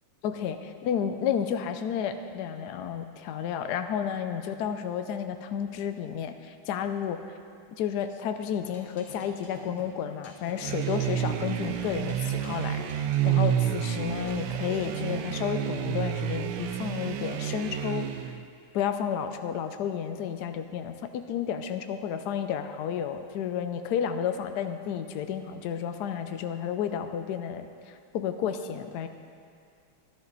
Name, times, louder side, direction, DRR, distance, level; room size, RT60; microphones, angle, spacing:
voice 1, 0.2-7.2 7.8-18.3 18.7-29.1, left 8 dB, 75° left, 8 dB, 0.9 m, -32 dB
sound 1, 8.6-15.5, left 3 dB, 60° left, 2.1 m, -46 dB
sound 2, 10.6-18.4, right 10 dB, 75° right, 1.2 m, -29 dB
13.5 x 11.5 x 4.0 m, 2.3 s
omnidirectional pair, 2.4 m